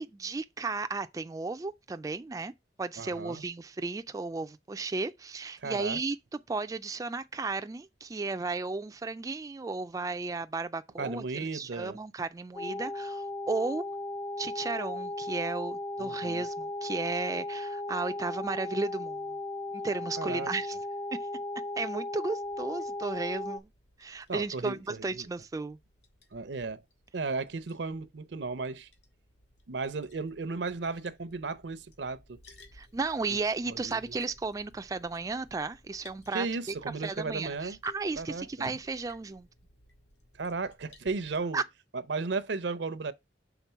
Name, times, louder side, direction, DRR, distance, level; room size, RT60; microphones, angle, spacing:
voice 1, 0.0-2.5 2.8-6.2 6.5-13.8 14.4-19.2 19.8-20.8 21.8-23.7 24.0-25.8 32.7-36.5 37.0-39.5 41.5-41.6, right 3 dB, 20° right, 0.3 m, -34 dB
voice 2, 3.0-3.4 5.6-6.0 11.0-12.0 16.0-16.5 20.2-20.5 24.3-25.3 26.3-26.8 27.1-28.9 29.7-32.4 33.7-34.2 36.3-37.8 38.2-38.7 40.4-41.6 41.9-43.1, right 4 dB, 80° right, 0.6 m, -35 dB
sound 1, 12.6-23.6, left 2 dB, 30° left, 0.5 m, -36 dB
Liquid, 22.4-41.4, left 2 dB, 75° left, 1.7 m, -58 dB
5.9 x 3.7 x 5.5 m
head